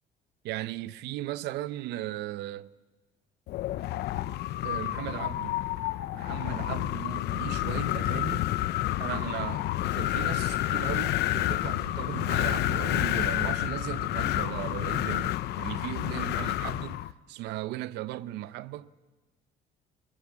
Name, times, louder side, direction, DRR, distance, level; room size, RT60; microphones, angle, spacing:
voice 1, 0.4-2.7 4.6-5.6 6.1-8.5 9.0-18.9, right 15 dB, 85° right, 0.8 m, -37 dB
Wind, 3.5-17.1, left 15 dB, 75° left, 0.8 m, -29 dB
23.0 x 22.5 x 8.6 m
cardioid pair, 110°, 17 cm